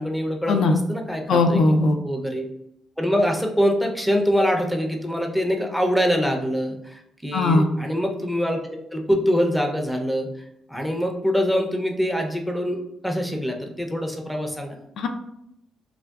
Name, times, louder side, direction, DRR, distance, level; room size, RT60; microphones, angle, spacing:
voice 1, 0.0-2.5 3.0-10.3 10.7-14.8, equal, ahead, 3 dB, 0.5 m, -24 dB
voice 2, 1.3-2.0 7.3-7.7 15.0-15.1, left 2 dB, 70° left, 5 dB, 0.3 m, -18 dB
3.5 x 2.2 x 2.3 m, 0.79 s
cardioid pair, 90°, 0 cm